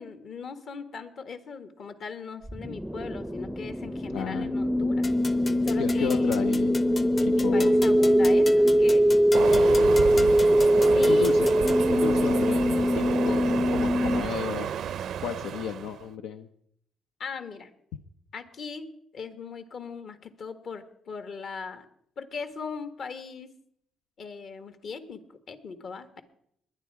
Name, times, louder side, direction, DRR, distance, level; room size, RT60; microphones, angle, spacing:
voice 1, 0.0-5.1 5.6-6.5 7.2-9.0 9.4-9.9 10.9-11.3 17.2-17.7 18.3-18.9 19.1-21.8 22.2-23.5 24.2-25.2 25.5-26.2, left 5 dB, 60° left, 9 dB, 1.6 m, -39 dB
sound 1, 2.5-14.2, equal, 5° right, 0.5 m, -22 dB
voice 2, 4.1-4.5 5.8-6.8 7.4-7.7 10.2-10.3 11.1-11.5 11.9-14.7 15.2-16.5, left 8 dB, 90° left, 8 dB, 0.6 m, -33 dB
sound 2, 5.0-11.9, left 3 dB, 35° left, 0.8 m, -40 dB
Train, 9.3-16.0, right 9 dB, 70° right, 0.5 m, -31 dB
21.5 x 10.0 x 4.8 m, 0.72 s
cardioid pair, 90°, 0 cm